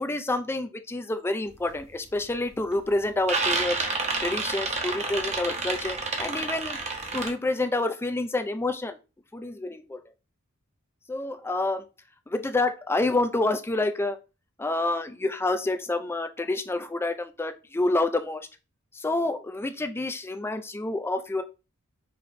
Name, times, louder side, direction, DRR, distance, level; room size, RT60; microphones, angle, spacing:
voice 1, 0.0-3.8 4.2-6.8 7.1-9.0 9.3-10.0 11.1-11.8 12.3-14.2 14.6-18.5 18.9-21.4, left 2 dB, 10° left, 9 dB, 0.3 m, -28 dB
sound 1, 1.6-1.8 2.2-2.7 3.0-7.3, right 3 dB, 30° right, 0.8 m, -29 dB
4.8 x 3.0 x 2.5 m, 0.31 s
head